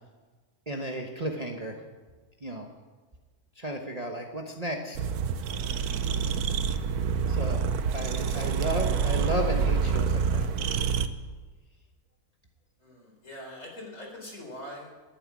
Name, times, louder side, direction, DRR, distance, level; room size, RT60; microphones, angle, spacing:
voice 1, 0.7-1.9 2.4-2.7 3.6-5.0 7.3-10.5, right 1 dB, 30° right, 2 dB, 1.1 m, -33 dB
sound 1, 5.0-11.1, right 6 dB, 75° right, 1.3 m, -27 dB
voice 2, 12.8-15.0, left 1 dB, 55° left, 0 dB, 4.3 m, -43 dB
11.5 x 10.0 x 9.8 m, 1.4 s
omnidirectional pair, 1.6 m